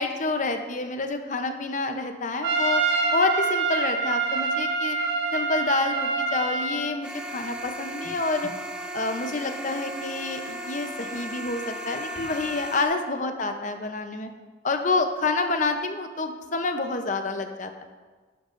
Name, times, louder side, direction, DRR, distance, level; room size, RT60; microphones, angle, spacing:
voice 1, 0.0-2.8 3.1-5.0 5.3-8.5 8.9-14.3 14.6-17.8, left 3 dB, 40° left, 6 dB, 0.7 m, -28 dB
Trumpet, 2.4-6.9, right 4 dB, 65° right, 1.3 m, -25 dB
sound 1, 7.0-12.8, equal, 5° right, 0.9 m, -36 dB
12.0 x 10.0 x 2.6 m, 1.4 s
head